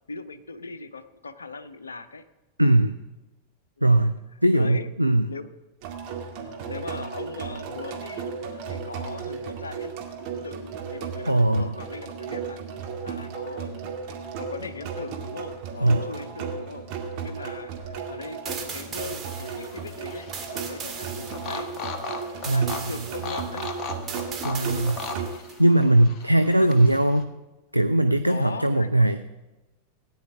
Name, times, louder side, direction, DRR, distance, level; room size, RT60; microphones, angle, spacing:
voice 1, 0.1-2.2 3.8-4.1 4.5-4.9 5.3-5.5 6.4-9.9 10.3-12.6 13.0-14.0 14.4-16.9 17.2-23.7 25.1-25.3 26.6-26.8 28.1-29.1, left 4 dB, 75° left, 12 dB, 0.6 m, -40 dB
voice 2, 2.6-3.0 3.8-5.3 11.3-11.8 15.8-16.1 22.5-22.9 24.4-25.1 25.6-27.3 27.7-29.2, right 1 dB, 85° right, 10 dB, 0.4 m, -20 dB
sound 1, 5.8-25.3, right 6 dB, 45° right, 2.0 m, -35 dB
sound 2, 18.4-25.6, right 5 dB, 20° right, 2.0 m, -39 dB
sound 3, 19.1-27.2, left 4 dB, 35° left, 1.1 m, -38 dB
17.5 x 10.0 x 3.5 m, 1.1 s
figure-of-eight pair, 90°, 0 cm